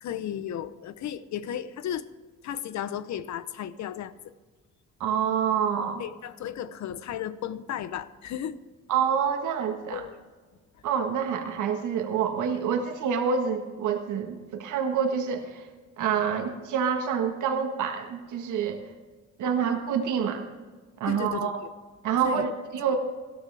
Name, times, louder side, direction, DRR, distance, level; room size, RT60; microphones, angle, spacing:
voice 1, 0.0-2.1 2.4-4.3 6.0-8.6 9.9-10.2 21.1-21.5 22.2-22.5, left 10 dB, 65° left, 15 dB, 0.8 m, -34 dB
voice 2, 5.0-6.0 8.9-10.0 10.8-15.7 16.0-18.8 19.4-20.5 21.0-21.6 22.0-23.0, right 7 dB, 80° right, 4 dB, 1.5 m, -27 dB
17.5 x 13.0 x 3.4 m, 1.4 s
cardioid pair, 90°, 30 cm